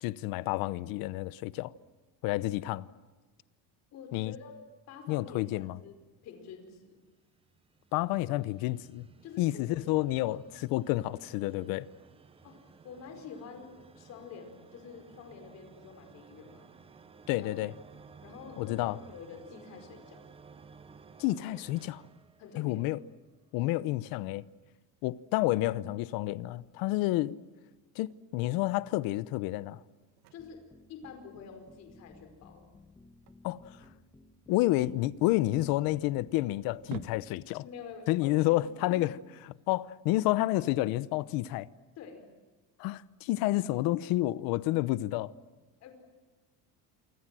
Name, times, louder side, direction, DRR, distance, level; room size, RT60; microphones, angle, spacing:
voice 1, 0.0-1.7 2.2-2.9 4.1-4.3 5.1-5.8 7.9-9.1 9.4-11.9 17.3-17.7 18.6-19.0 21.2-22.0 22.6-23.0 23.5-24.4 25.0-27.4 28.0-29.8 33.4-33.7 34.5-37.6 38.1-39.1 39.7-41.7 42.8-45.3, left 17 dB, 65° left, 0.9 m, -29 dB
voice 2, 3.9-4.5 4.9-7.0 9.2-9.8 10.3-10.4 12.4-12.6 12.8-16.7 17.3-17.5 18.2-20.2 22.4-22.8 30.3-30.6 30.9-32.7 37.6-39.0 42.0-42.3 45.8-45.9, left 6 dB, 45° left, 5.1 m, -47 dB
sound 1, 7.1-23.2, right 5 dB, 15° right, 0.9 m, -56 dB
sound 2, 26.3-39.5, right 11 dB, 65° right, 1.6 m, -54 dB
sound 3, 30.4-37.2, left 2 dB, 10° left, 1.2 m, -58 dB
28.0 x 24.5 x 7.7 m
cardioid pair, 175°, 37 cm